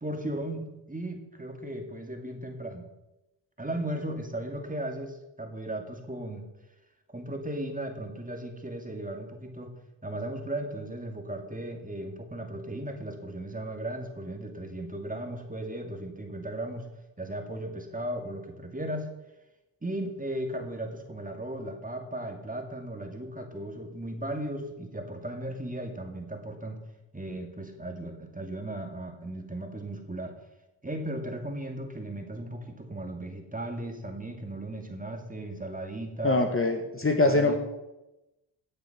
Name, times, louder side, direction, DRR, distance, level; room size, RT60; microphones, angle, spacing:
voice 1, 0.0-2.9 3.6-6.4 7.1-9.7 10.0-16.9 17.2-19.1 19.8-26.8 27.1-30.3 30.8-36.4 37.2-37.6, right 1 dB, 15° right, 4 dB, 2.2 m, -36 dB
voice 2, 36.2-37.6, left 2 dB, 25° left, 5 dB, 1.6 m, -23 dB
17.5 x 6.8 x 6.0 m, 0.97 s
cardioid pair, 75°, 47 cm